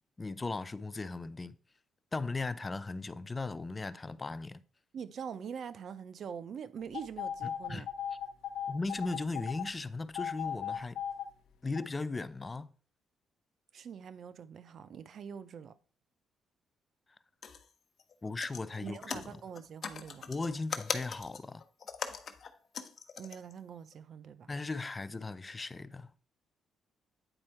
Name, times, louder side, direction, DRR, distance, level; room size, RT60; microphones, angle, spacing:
voice 1, 0.2-1.6 2.1-4.6 7.7-7.9 8.7-11.0 11.6-12.7 18.2-19.4 20.3-21.6 24.5-26.1, left 3 dB, 25° left, 0.4 m, -37 dB
voice 2, 4.9-7.9 13.7-15.7 18.8-20.3 23.2-24.5, right 7 dB, 60° right, 0.6 m, -44 dB
sound 1, 6.9-9.7 10.1-11.3 11.8-11.9, left 9 dB, 80° left, 0.8 m, -37 dB
sound 2, 17.4-17.7 18.0-18.1 18.4-23.5 23.9-24.0, left 6 dB, 50° left, 0.8 m, -41 dB
8.9 x 4.4 x 4.4 m
cardioid pair, 90°, 0 cm